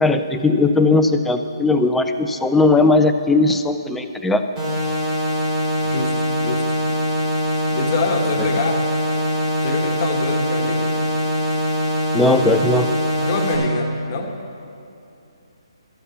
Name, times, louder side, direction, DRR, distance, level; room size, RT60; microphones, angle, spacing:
voice 1, 0.0-4.4 12.1-12.9, left 3 dB, 5° left, 7 dB, 0.4 m, -17 dB
sound 1, 4.6-13.6, equal, 20° right, 3.5 m, -22 dB
voice 2, 5.8-6.1 6.4-6.6 7.7-8.8 9.6-10.9 13.2-14.3, left 4 dB, 35° left, 3 dB, 1.2 m, -25 dB
12.5 x 7.2 x 6.9 m, 2.7 s
figure-of-eight pair, 145°, 3 cm